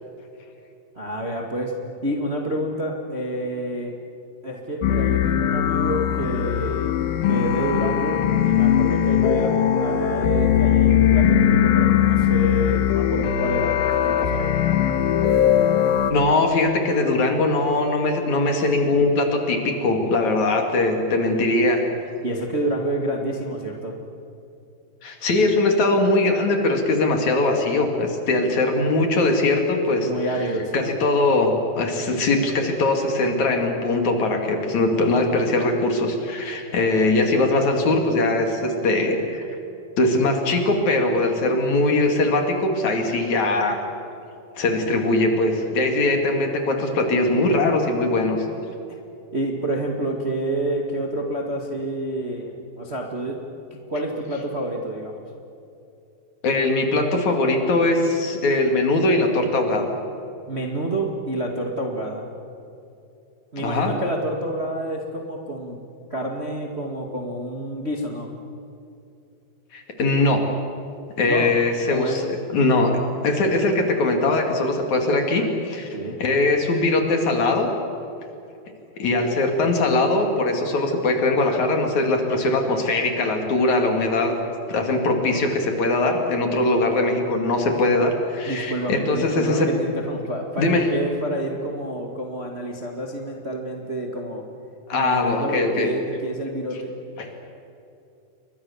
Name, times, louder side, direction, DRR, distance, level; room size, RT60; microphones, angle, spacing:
voice 1, 0.9-1.7 2.0-3.9 4.4-6.9 7.2-14.6 22.2-24.0 30.0-30.9 48.9-49.0 49.3-52.5 52.8-53.4 53.7-55.2 60.5-62.3 63.5-65.8 66.1-68.3 71.2-71.6 71.8-72.2 75.9-76.2 88.5-94.4 94.9-96.9, right 1 dB, 25° right, 1 dB, 1.6 m, -28 dB
sound 1, 4.8-16.1, left 9 dB, 80° left, 3.1 m, -20 dB
voice 2, 16.1-21.8 25.0-30.1 30.7-39.5 40.0-43.9 44.6-48.4 56.4-59.9 63.6-63.9 69.7-70.4 71.2-73.0 73.2-75.9 76.2-77.7 79.0-84.4 84.7-89.7 90.6-90.9 94.9-95.9 97.2-97.3, left 2 dB, 55° left, 3 dB, 3.6 m, -21 dB
29.5 x 23.5 x 7.2 m, 2.6 s
omnidirectional pair, 4.2 m